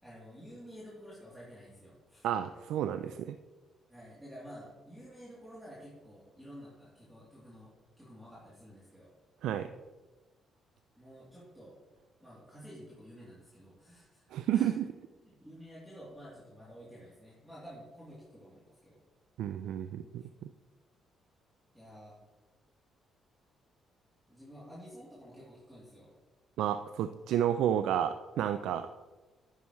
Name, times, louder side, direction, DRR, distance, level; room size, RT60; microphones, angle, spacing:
voice 1, 0.0-2.3 3.9-7.7 8.0-9.1 11.0-11.8 12.2-14.8 15.2-19.0 21.7-22.2 24.3-26.1, equal, 5° right, -8 dB, 3.0 m, -51 dB
voice 2, 2.2-3.4 9.4-9.7 14.3-14.8 19.4-20.5 26.6-28.9, right 10 dB, 85° right, 10 dB, 0.4 m, -31 dB
10.5 x 9.1 x 3.1 m, 1.2 s
cardioid pair, 90°, 0 cm